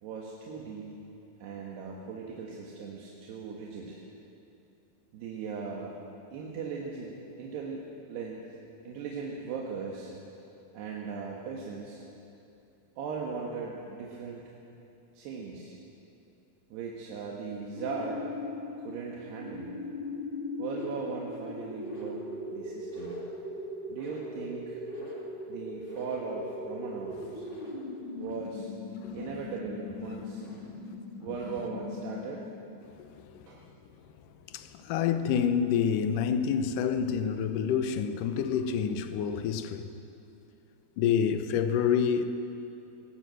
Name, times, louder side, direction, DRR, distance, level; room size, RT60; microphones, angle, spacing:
voice 1, 0.0-1.0 1.4-4.0 5.1-5.9 6.3-8.4 8.9-10.2 10.7-12.0 13.0-14.5 15.2-15.8 16.7-18.3 18.8-19.8 20.6-23.2 23.9-24.8 25.5-27.5 28.2-28.7 29.1-30.4 31.2-32.5 33.5-33.7, right 5 dB, 85° right, 3.7 m, -38 dB
sound 1, 17.7-32.6, left 2 dB, 20° left, 1.8 m, -39 dB
voice 2, 34.5-39.9 41.0-42.3, left 7 dB, 70° left, 2.1 m, -27 dB
19.0 x 18.0 x 7.8 m
omnidirectional pair, 4.7 m